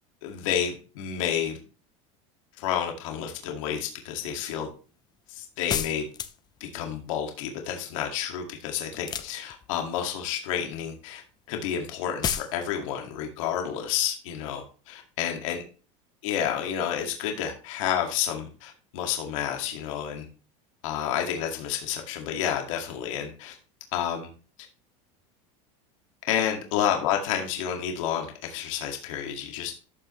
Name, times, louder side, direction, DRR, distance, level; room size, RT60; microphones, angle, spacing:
voice 1, 0.2-1.6 2.6-4.7 5.3-6.1 6.6-11.2 11.5-15.6 16.2-20.3 20.8-23.6 23.9-24.3 26.3-29.7, left 9 dB, 80° left, 2 dB, 2.1 m, -30 dB
sound 1, 5.7-6.6 9.0-9.8 12.2-12.5, left 8 dB, 25° left, 0.7 m, -30 dB
13.0 x 5.6 x 3.2 m, 0.36 s
supercardioid pair, 135°, 16 cm